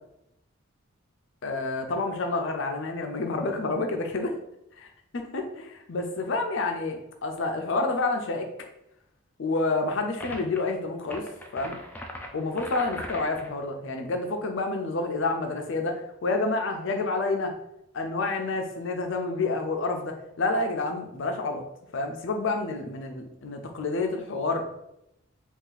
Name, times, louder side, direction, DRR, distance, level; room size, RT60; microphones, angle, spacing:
voice 1, 1.4-4.3 5.3-8.5 9.4-11.2 11.5-11.8 12.3-17.5 17.9-21.6 21.9-24.7, left 3 dB, 60° left, 4 dB, 0.5 m, -29 dB
sound 1, 10.2-10.6 11.0-13.5, equal, 10° left, 0.3 m, -39 dB
2.7 x 2.4 x 3.9 m, 0.80 s
head